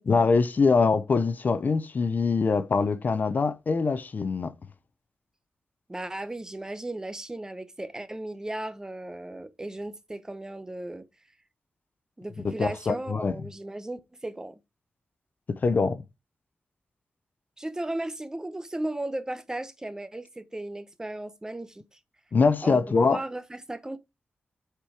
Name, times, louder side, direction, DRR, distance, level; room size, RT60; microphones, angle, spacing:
voice 1, 0.0-4.5 12.4-13.3 15.5-16.0 22.3-23.2, left 4 dB, 50° left, 0.7 m, -23 dB
voice 2, 5.9-11.0 12.2-14.6 17.6-22.0 22.6-24.0, right 1 dB, 15° right, 0.8 m, -36 dB
8.1 x 4.5 x 4.8 m
wide cardioid pair, 115°, 4 cm